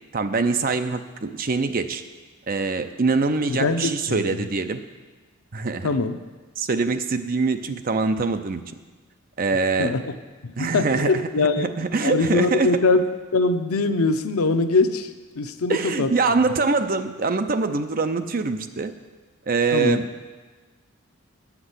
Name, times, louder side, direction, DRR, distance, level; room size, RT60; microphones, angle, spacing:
voice 1, 0.1-2.0 2.5-4.8 5.5-5.9 6.6-8.6 9.4-9.9 10.6-12.7 15.7-18.9 19.5-20.1, right 4 dB, 40° right, 8 dB, 0.5 m, -24 dB
voice 2, 3.5-4.5 5.8-6.2 9.8-10.1 10.4-11.7 12.0-13.0 13.3-15.1 15.4-16.1 19.7-20.0, left 3 dB, 90° left, 9 dB, 0.6 m, -22 dB
9.3 x 5.9 x 8.0 m, 1.3 s
head